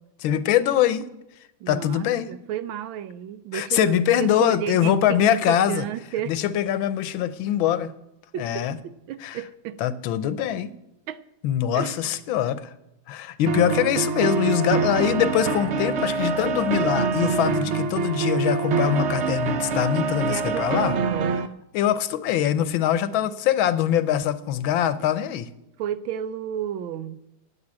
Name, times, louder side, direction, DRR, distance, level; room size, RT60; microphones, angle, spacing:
voice 1, 0.2-1.1 1.7-2.3 3.5-5.8 6.3-7.9 8.4-8.8 9.2-9.4 9.8-10.7 11.4-12.7 13.1-20.9 21.7-25.5, left 10 dB, 85° left, 1.5 m, -23 dB
voice 2, 1.6-6.4 8.3-9.8 11.1-11.2 11.7-12.1 20.2-21.4 25.8-27.2, right 10 dB, 85° right, 1.5 m, -32 dB
sound 1, 13.5-21.5, right 4 dB, 70° right, 0.6 m, -25 dB
9.7 x 8.7 x 8.6 m
omnidirectional pair, 2.1 m